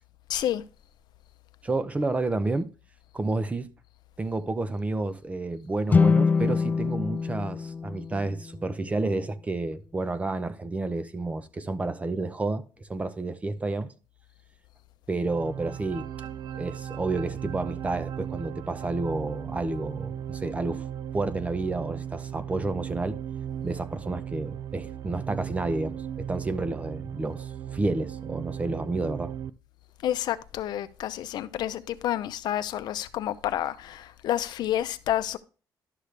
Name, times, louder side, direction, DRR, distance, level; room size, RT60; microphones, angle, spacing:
voice 1, 0.3-0.6 30.0-35.4, left 11 dB, 70° left, 0.6 m, -29 dB
voice 2, 1.6-2.7 3.1-3.7 4.2-13.9 15.1-16.1 16.5-20.9 21.1-23.2 23.6-29.3, right 2 dB, 20° right, 0.7 m, -30 dB
sound 1, 5.9-9.1, left 5 dB, 25° left, 0.4 m, -25 dB
sound 2, 15.2-29.5, right 9 dB, 60° right, 0.5 m, -37 dB
11.5 x 6.6 x 3.3 m
cardioid pair, 135°, 8 cm